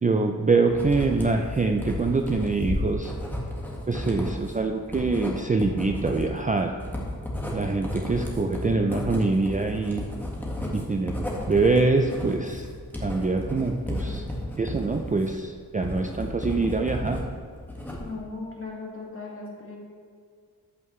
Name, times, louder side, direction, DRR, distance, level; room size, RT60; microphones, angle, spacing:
voice 1, 0.0-3.1 3.9-6.7 7.5-10.1 10.7-12.7 13.0-14.2 14.6-17.2, right 3 dB, 20° right, 3 dB, 0.4 m, -24 dB
Writing, 0.7-17.2 17.6-18.3, left 1 dB, 5° left, 1.7 m, -33 dB
voice 2, 18.0-19.7, left 3 dB, 35° left, -3 dB, 2.2 m, -37 dB
14.0 x 5.4 x 3.2 m, 2.1 s
wide cardioid pair, 115°, 37 cm